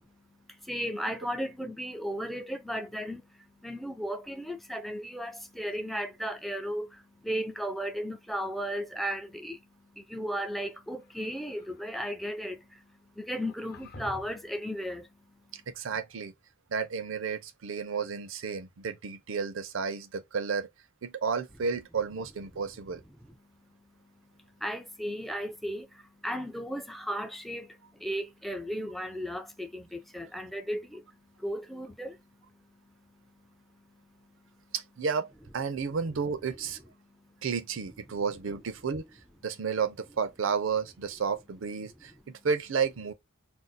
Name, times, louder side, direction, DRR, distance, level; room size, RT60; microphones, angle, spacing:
voice 1, 0.2-15.6 22.5-22.6 23.4-34.7 37.0-37.4, equal, ahead, 0.4 m, -36 dB
closing an old door, 11.0-11.9 13.3-14.5, left 1 dB, 50° left, 0.8 m, -48 dB
voice 2, 15.5-16.3 16.7-20.7 21.0-23.0 34.7-35.3 35.5-36.8 37.4-39.0 39.4-43.1, right 6 dB, 70° right, 0.5 m, -32 dB
2.6 x 2.0 x 3.9 m
head